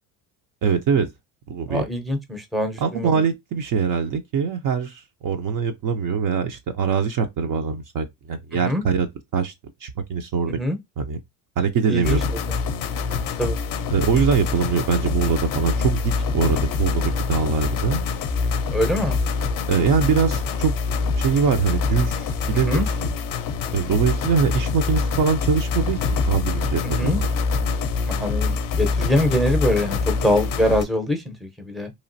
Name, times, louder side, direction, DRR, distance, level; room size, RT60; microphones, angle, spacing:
voice 1, 0.6-1.1 1.5-1.9 2.8-9.1 9.3-9.5 9.8-10.6 11.0-11.2 11.6-12.2 13.9-18.0 19.7-20.7 21.2-22.9 23.7-27.3, right 6 dB, 45° right, 0.5 m, -23 dB
voice 2, 1.7-3.1 8.6-8.8 10.5-10.8 11.9-12.2 12.4-12.5 13.4-13.6 18.7-19.2 22.5-22.8 26.8-27.2 28.1-31.9, left 1 dB, ahead, 0.6 m, -23 dB
sound 1, 12.0-30.8, left 4 dB, 45° left, 0.6 m, -25 dB
3.0 x 2.4 x 2.6 m
supercardioid pair, 95°, 48 cm